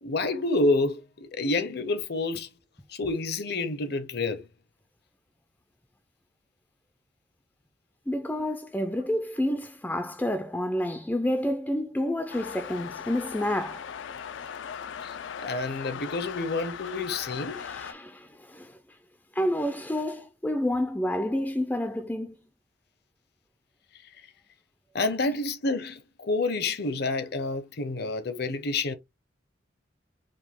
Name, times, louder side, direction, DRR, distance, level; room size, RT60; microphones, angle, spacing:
voice 1, 0.0-2.5 2.9-4.4 15.0-15.1 15.4-17.6 24.9-28.9, left 2 dB, 60° left, 0.7 m, -28 dB
voice 2, 8.1-13.9 17.5-18.8 19.3-22.4, left 1 dB, 10° left, 0.4 m, -29 dB
sound 1, 12.3-17.9, left 7 dB, 85° left, 0.4 m, -39 dB
5.1 x 2.3 x 3.5 m
head